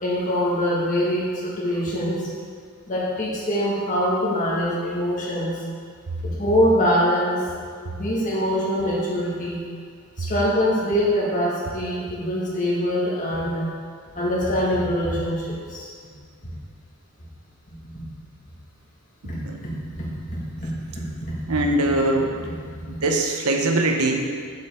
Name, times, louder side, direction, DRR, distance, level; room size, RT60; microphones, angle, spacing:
voice 1, 0.0-2.2 2.9-5.6 6.2-7.4 7.9-9.6 10.2-13.7 14.1-15.9 17.9-18.0 19.2-21.6, equal, 35° left, -6 dB, 1.6 m, -24 dB
voice 2, 21.5-22.3 23.0-24.3, right 2 dB, 80° right, 2 dB, 0.8 m, -21 dB
8.0 x 5.3 x 3.5 m, 2.1 s
head